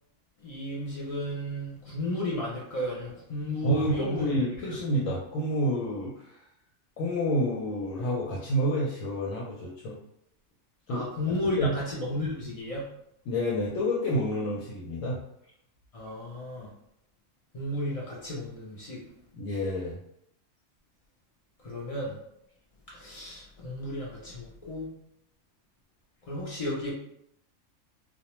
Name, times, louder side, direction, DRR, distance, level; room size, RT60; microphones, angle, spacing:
voice 1, 0.4-4.3 10.9-12.9 15.9-16.7 17.5-19.0 21.6-22.2 22.9-24.9 26.3-26.9, left 1 dB, 50° left, -5 dB, 0.4 m, -33 dB
voice 2, 3.6-6.1 7.0-9.9 10.9-11.1 11.6-11.8 13.3-15.2 19.3-20.0, equal, 80° left, -4 dB, 0.9 m, -29 dB
2.3 x 2.1 x 2.9 m, 0.76 s
omnidirectional pair, 1.3 m